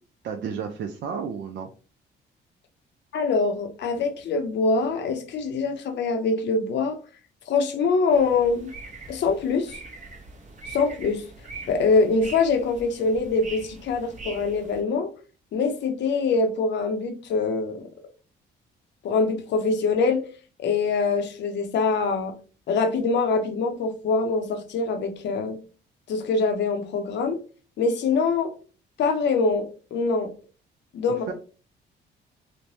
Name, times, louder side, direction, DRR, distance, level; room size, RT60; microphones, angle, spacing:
voice 1, 0.2-1.7 31.3-31.4, right 7 dB, 65° right, 3 dB, 0.5 m, -32 dB
voice 2, 3.1-7.0 7.5-8.7 9.1-9.8 10.7-11.2 11.7-15.1 15.5-17.9 19.0-20.2 20.6-22.3 22.7-25.6 26.1-27.4 27.8-28.5 29.0-30.3 30.9-31.3, left 4 dB, 65° left, 5 dB, 0.6 m, -24 dB
sound 1, 8.1-14.8, right 3 dB, 40° right, 0.8 m, -42 dB
3.1 x 2.1 x 2.6 m, 0.36 s
cardioid pair, 90°, 20 cm